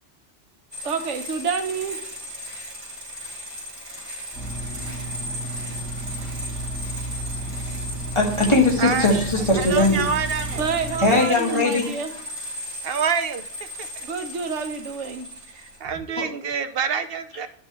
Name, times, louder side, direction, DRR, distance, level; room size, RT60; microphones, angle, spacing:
sound 1, 0.7-16.0, equal, 25° right, 2.0 m, -36 dB
voice 1, 0.8-2.0 10.5-12.1 14.1-15.3, right 5 dB, 85° right, 7 dB, 1.3 m, -28 dB
sound 2, 4.3-11.2, right 2 dB, 5° right, 2.9 m, -33 dB
voice 2, 8.1-10.0 11.0-11.9 16.2-16.3, left 2 dB, 25° left, 0 dB, 1.8 m, -19 dB
voice 3, 8.8-9.2 9.5-10.6 11.1-11.7 12.8-14.1 15.5-17.5, right 6 dB, 60° right, 10 dB, 0.9 m, -27 dB
9.7 x 6.0 x 3.0 m, 0.63 s
omnidirectional pair, 1.2 m